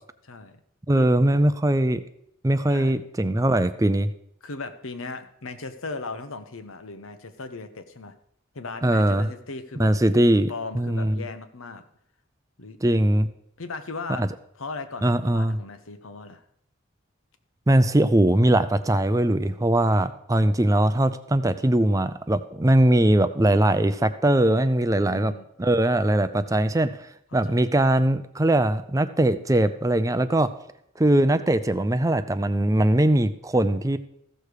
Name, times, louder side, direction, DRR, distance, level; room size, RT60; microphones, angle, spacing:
voice 1, 0.3-0.6 0.9-1.4 2.7-3.0 4.4-8.2 8.5-9.9 10.5-11.8 12.6-12.8 13.6-14.3 14.6-16.4 25.0-25.4 27.3-27.7, left 3 dB, 90° left, 9 dB, 1.1 m, -37 dB
voice 2, 0.9-2.0 2.4-4.1 8.8-9.3 9.8-11.2 12.8-13.3 14.2-14.3 15.0-15.6 17.7-25.3 25.6-26.9 27.3-30.5 31.0-34.0, right 1 dB, 15° right, 11 dB, 0.4 m, -21 dB
15.0 x 6.7 x 4.8 m, 0.74 s
head